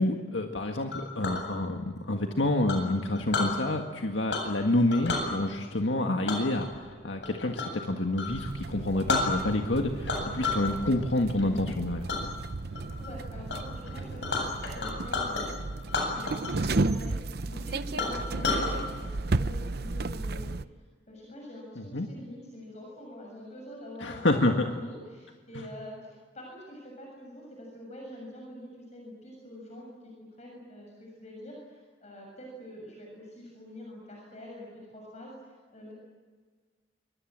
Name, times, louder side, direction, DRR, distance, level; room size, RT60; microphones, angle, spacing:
voice 1, 0.0-12.1 21.9-22.1 24.0-24.7 25.5-25.7, left 1 dB, 85° left, 3 dB, 1.8 m, -28 dB
Chink clink, 0.9-1.4 2.7-3.5 4.3-4.6 4.9-5.3 6.3-7.8 8.1-8.3 8.8-8.9 9.1-9.7 10.1-10.7 11.1-11.4 12.1-12.2 12.7-13.1 13.5-13.6 13.8-15.5 15.9-16.7 16.9-17.0 17.5-17.6 18.0-18.7, left 3 dB, 70° left, 7.7 m, -31 dB
sound 1, 8.3-20.7, right 2 dB, 60° right, 0.7 m, -34 dB
voice 2, 12.7-35.9, left 1 dB, 40° left, -1 dB, 6.9 m, -45 dB
27.5 x 24.5 x 7.6 m, 1.5 s
head